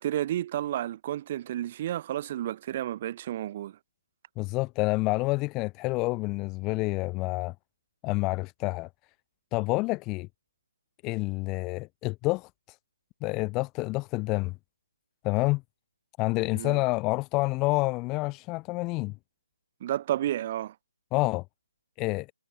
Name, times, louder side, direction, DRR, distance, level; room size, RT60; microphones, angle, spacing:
voice 1, 0.0-3.8 16.5-16.8 19.8-20.7, right 12 dB, 25° right, 8.0 m, -31 dB
voice 2, 4.4-7.5 8.0-8.9 9.5-10.3 11.0-12.5 13.2-14.5 15.2-15.6 16.2-19.1 21.1-21.4 22.0-22.3, left 23 dB, 15° left, 1.3 m, -28 dB
hypercardioid pair, 165°, 0 cm